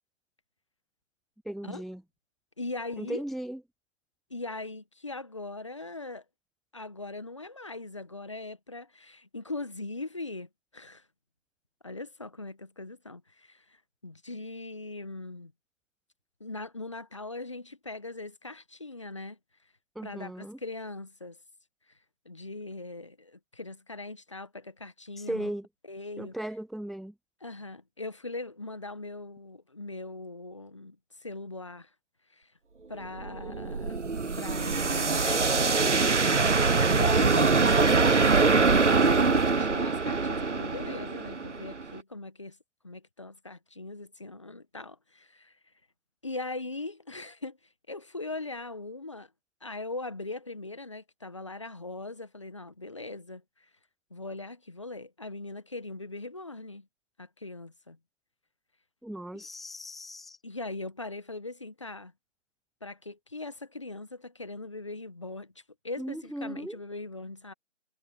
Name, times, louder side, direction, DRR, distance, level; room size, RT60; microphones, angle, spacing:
voice 1, 1.4-2.0 3.0-3.6 20.0-20.6 25.2-25.7 26.2-27.1 59.0-60.4 66.0-66.8, right 1 dB, ahead, 0.4 m, -37 dB
voice 2, 2.6-3.2 4.3-6.2 6.7-11.0 11.8-15.5 16.4-19.4 20.0-21.4 22.2-25.5 25.8-26.4 27.4-31.9 32.3-32.5 32.9-34.0 34.4-35.9 36.9-42.6 42.8-45.6 46.2-47.6 47.9-49.3 49.6-53.7 54.1-56.9 57.2-58.0 59.3-59.5 60.4-62.1 62.8-65.5 65.8-67.5, left 2 dB, 25° left, 1.4 m, -40 dB
sound 1, 33.0-42.0, right 4 dB, 65° right, 1.1 m, -24 dB
figure-of-eight pair, 170°, 39 cm